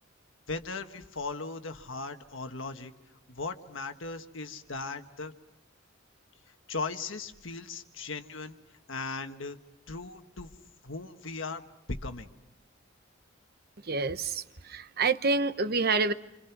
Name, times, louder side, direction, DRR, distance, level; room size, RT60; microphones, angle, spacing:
voice 1, 0.5-2.9 3.3-5.3 6.7-8.6 8.9-9.6 9.9-10.5 10.8-12.3, left 3 dB, 75° left, 7 dB, 1.5 m, -38 dB
voice 2, 13.8-16.1, right 4 dB, 50° right, 10 dB, 1.0 m, -28 dB
28.5 x 26.5 x 6.0 m, 0.86 s
head